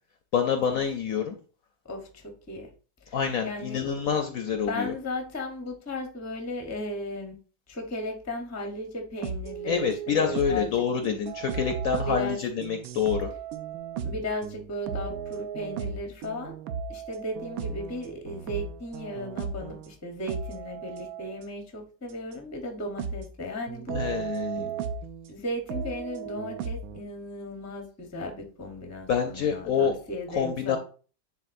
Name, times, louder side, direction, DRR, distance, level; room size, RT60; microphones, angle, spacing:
voice 1, 0.3-1.4 3.1-4.9 9.7-13.3 23.9-24.7 29.1-30.0 30.4-30.8, left 7 dB, 65° left, 6 dB, 0.9 m, -27 dB
voice 2, 1.8-2.7 3.1-3.2 3.4-3.9 4.7-7.4 7.7-10.8 12.0-12.4 14.0-16.6 16.9-24.1 25.3-30.8, left 1 dB, 15° left, 3 dB, 0.6 m, -36 dB
sound 1, 9.2-10.7 11.0-19.9 20.3-21.4 22.3-22.4 23.0-23.4 23.7-25.3 25.7-27.0, right 6 dB, 70° right, 0.8 m, -35 dB
9.9 x 3.7 x 2.6 m, 0.39 s
omnidirectional pair, 1.9 m